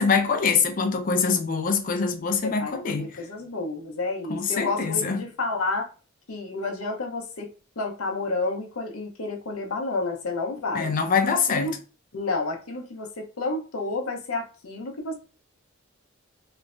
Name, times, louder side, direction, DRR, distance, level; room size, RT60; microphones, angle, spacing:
voice 1, 0.0-3.1 4.3-5.2 10.7-11.7, left 5 dB, 40° left, 0.4 m, -24 dB
voice 2, 2.4-5.9 6.3-10.9 11.5-11.8 12.1-15.1, left 3 dB, 85° left, 0.7 m, -30 dB
3.1 x 2.1 x 2.5 m
head